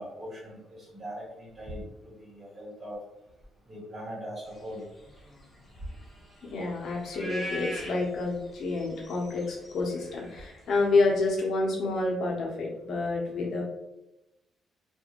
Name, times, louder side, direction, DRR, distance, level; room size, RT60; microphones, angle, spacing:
voice 1, 0.0-3.0 3.7-4.9, equal, 40° right, -5 dB, 1.3 m, -41 dB
sound 1, 4.5-11.4, equal, 15° left, 1.0 m, -43 dB
voice 2, 6.5-13.6, left 3 dB, 60° left, -2 dB, 0.8 m, -28 dB
2.6 x 2.4 x 2.9 m, 0.89 s
cardioid pair, 90°, 0 cm